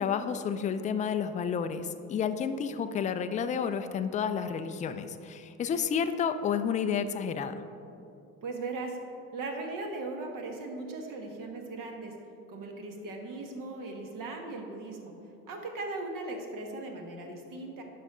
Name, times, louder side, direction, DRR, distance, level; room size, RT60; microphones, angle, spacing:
voice 1, 0.0-7.5, left 7 dB, 20° left, 10 dB, 0.4 m, -30 dB
voice 2, 8.4-9.0 9.3-12.1 12.5-15.1 15.5-17.8, right 3 dB, 45° right, 3 dB, 1.6 m, -38 dB
11.0 x 6.6 x 3.7 m, 2.7 s
hypercardioid pair, 65°, 45 cm